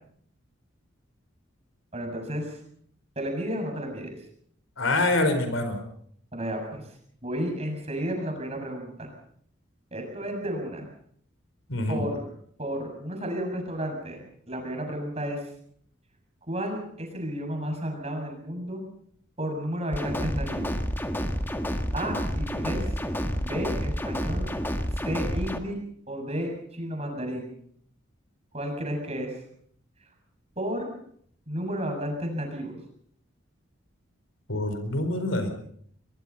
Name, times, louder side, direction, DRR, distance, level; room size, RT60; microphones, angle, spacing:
voice 1, 1.9-2.6 3.2-4.1 6.3-7.0 7.2-9.1 9.9-10.9 11.9-12.3 12.6-15.5 16.5-18.8 19.4-20.8 21.9-23.0 23.3-24.5 24.9-25.8 26.1-27.5 28.5-29.4 30.6-30.9 31.5-32.8, equal, 30° right, 3 dB, 7.2 m, -32 dB
voice 2, 4.8-5.8 11.7-12.0 34.5-35.6, left 2 dB, 80° left, 8 dB, 4.7 m, -25 dB
sound 1, 19.9-25.6, equal, 10° left, 1.7 m, -29 dB
23.5 x 22.5 x 5.7 m, 0.63 s
head